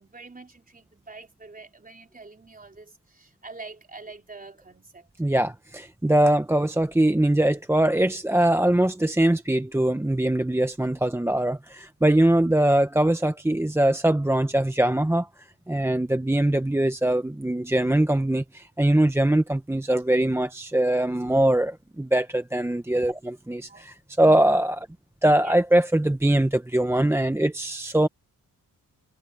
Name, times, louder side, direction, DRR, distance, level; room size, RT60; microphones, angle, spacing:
voice 1, 0.0-5.1 23.7-23.8 25.4-25.6, right 3 dB, 25° right, 3.6 m, -45 dB
voice 2, 5.2-15.3 15.7-24.9 25.2-28.1, right 1 dB, 5° right, 0.9 m, -22 dB
wide cardioid pair, 110°, 35 cm